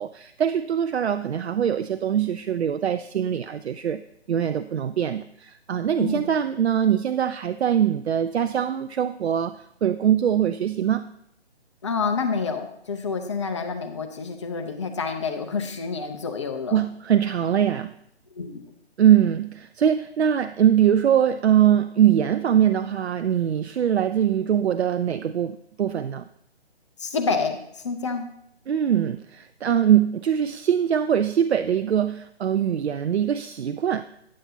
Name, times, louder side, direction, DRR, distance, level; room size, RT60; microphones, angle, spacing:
voice 1, 0.0-4.0 4.3-9.6 9.8-11.0 16.7-17.9 19.0-26.3 28.7-34.0, right 9 dB, 75° right, 11 dB, 0.5 m, -22 dB
voice 2, 6.0-6.3 11.8-16.8 18.3-18.6 27.0-28.3, left 4 dB, 30° left, 4 dB, 0.6 m, -28 dB
10.5 x 7.3 x 2.8 m, 0.75 s
figure-of-eight pair, 145°, 33 cm